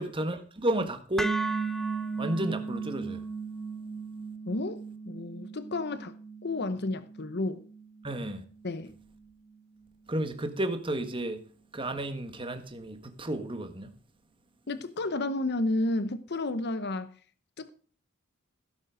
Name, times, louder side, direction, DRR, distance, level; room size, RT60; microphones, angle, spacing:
voice 1, 0.0-1.3 2.2-3.2 8.0-8.4 10.1-11.4 11.7-13.9, right 1 dB, 25° right, 1.5 m, -32 dB
sound 1, 1.2-9.3, right 4 dB, ahead, 0.8 m, -36 dB
voice 2, 4.5-6.1 6.4-7.6 8.6-8.9 14.7-17.1 17.6-17.7, left 2 dB, 50° left, 0.9 m, -31 dB
16.0 x 7.2 x 5.1 m
head